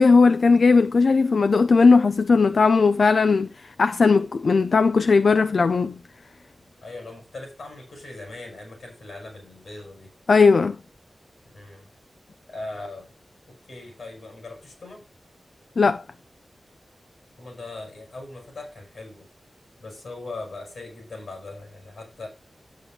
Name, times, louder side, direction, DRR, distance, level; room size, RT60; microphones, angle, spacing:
voice 1, 0.0-6.0 10.3-10.8 15.8-16.0, left 4 dB, 65° left, 0.4 m, -18 dB
voice 2, 6.8-10.1 11.5-11.9 12.5-13.1 13.5-15.1 17.4-19.3 19.8-22.3, left 2 dB, 80° left, 6.8 m, -39 dB
12.0 x 9.0 x 2.8 m
wide cardioid pair, 120°, 0 cm